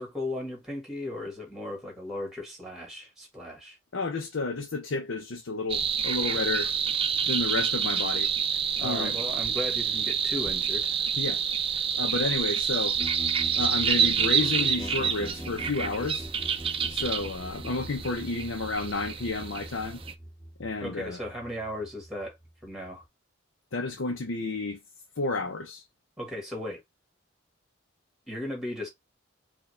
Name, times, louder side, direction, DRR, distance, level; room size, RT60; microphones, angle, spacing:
voice 1, 0.0-3.8 8.8-11.0 20.8-22.4 22.6-23.0 26.2-26.8 28.3-28.9, left 1 dB, ahead, 1.9 m, -36 dB
voice 2, 3.9-6.7 7.3-8.3 8.8-9.2 11.2-11.4 11.9-13.0 13.5-16.3 16.9-20.0 20.6-21.2 23.7-24.8 25.2-25.8, left 3 dB, 85° left, 0.7 m, -31 dB
sound 1, 5.7-20.1, right 7 dB, 30° right, 0.4 m, -28 dB
sound 2, 13.0-23.1, equal, 20° left, 1.9 m, -42 dB
4.7 x 2.4 x 3.3 m
head